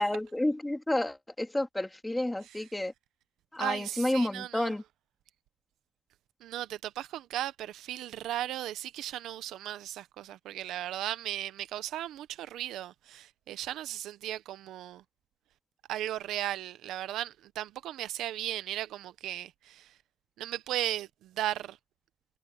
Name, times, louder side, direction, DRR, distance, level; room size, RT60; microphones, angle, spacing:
voice 1, 0.0-2.9 3.5-4.8, left 1 dB, 10° left, 2.3 m, -30 dB
voice 2, 3.6-4.7 6.4-15.0 15.9-19.9 20.4-21.8, right 13 dB, 85° right, 0.9 m, -36 dB
cardioid pair, 90°, 0 cm